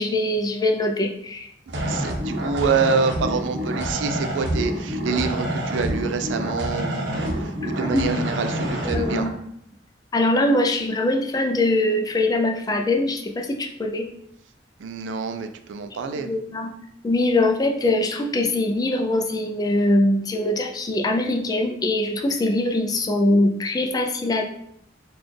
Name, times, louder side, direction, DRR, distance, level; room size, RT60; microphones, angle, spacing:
voice 1, 0.0-1.5 7.6-8.1 8.8-9.3 10.1-14.1 16.2-16.7 17.0-24.4, left 1 dB, 20° left, 3 dB, 0.4 m, -22 dB
sound 1, 1.7-9.3, equal, 65° right, 0.7 m, -27 dB
voice 2, 1.7-9.3 14.8-16.4, right 5 dB, 90° right, 8 dB, 0.4 m, -27 dB
4.1 x 2.3 x 3.2 m, 0.71 s
head